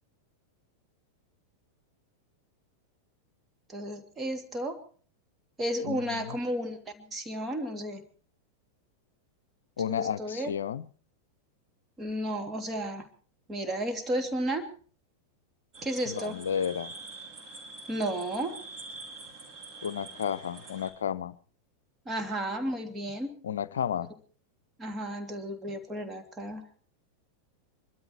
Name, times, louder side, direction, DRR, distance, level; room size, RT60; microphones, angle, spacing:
voice 1, 3.7-4.8 5.6-8.0 9.9-10.5 12.0-13.0 13.5-14.7 15.8-16.4 17.9-18.5 22.1-23.3 24.8-26.6, right 1 dB, 15° right, 5 dB, 2.7 m, -33 dB
voice 2, 5.8-6.4 9.8-10.9 16.1-16.9 19.8-21.3 23.4-24.1, left 8 dB, 65° left, 18 dB, 0.7 m, -32 dB
sound 1, 15.7-20.9, right 3 dB, 35° right, 6.2 m, -45 dB
24.5 x 13.0 x 4.5 m, 0.43 s
figure-of-eight pair, 90°, 0 cm